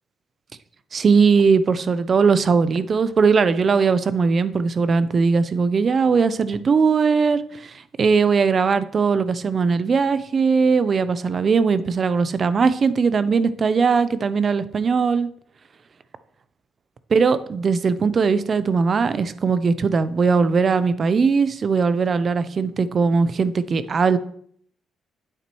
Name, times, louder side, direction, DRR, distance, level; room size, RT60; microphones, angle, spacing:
voice 1, 0.9-7.7 8.0-15.3 17.1-24.2, right 5 dB, 45° right, 14 dB, 0.6 m, -19 dB
9.2 x 8.3 x 3.1 m, 0.64 s
cardioid pair, 90°, 0 cm